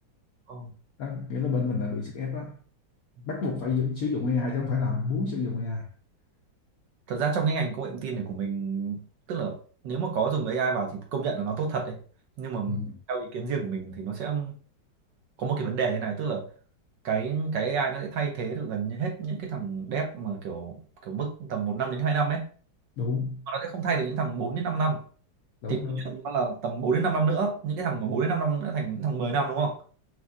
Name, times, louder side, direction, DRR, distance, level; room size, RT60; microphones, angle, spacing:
voice 1, 1.0-2.5 3.3-5.9 12.7-13.0 23.0-23.4 25.6-26.1, left 4 dB, 65° left, 0.9 m, -29 dB
voice 2, 7.1-9.0 9.3-9.6 9.8-12.0 12.4-12.8 13.1-14.5 15.4-16.4 17.0-22.5 23.5-25.0 25.7-25.8 26.0-29.7, right 5 dB, 65° right, 1.3 m, -28 dB
6.0 x 2.4 x 2.6 m
omnidirectional pair, 2.2 m